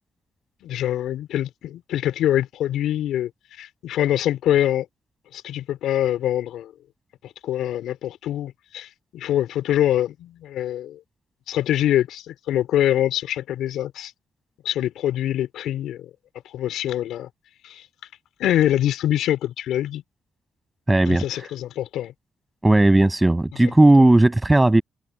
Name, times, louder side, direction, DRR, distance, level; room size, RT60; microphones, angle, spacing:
voice 1, 0.6-3.3 3.6-4.8 5.3-6.7 7.2-11.0 11.5-14.1 14.6-16.1 16.5-17.3 17.6-17.8 18.4-20.0 21.1-22.1 23.6-23.7, left 12 dB, 85° left, 4.6 m, -24 dB
voice 2, 20.9-21.2 22.6-24.8, right 2 dB, 10° right, 7.0 m, -15 dB
cardioid pair, 180°, 0 cm